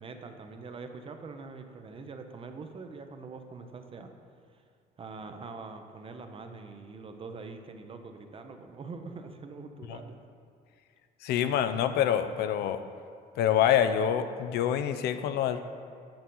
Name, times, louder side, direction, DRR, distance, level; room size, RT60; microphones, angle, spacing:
voice 1, 0.0-4.1 4.5-4.6 5.0-10.2, right 4 dB, 35° right, 6 dB, 0.6 m, -44 dB
voice 2, 11.2-12.8 13.4-15.6, left 9 dB, 75° left, 10 dB, 0.5 m, -26 dB
8.7 x 5.4 x 3.8 m, 2.4 s
cardioid pair, 110°, 17 cm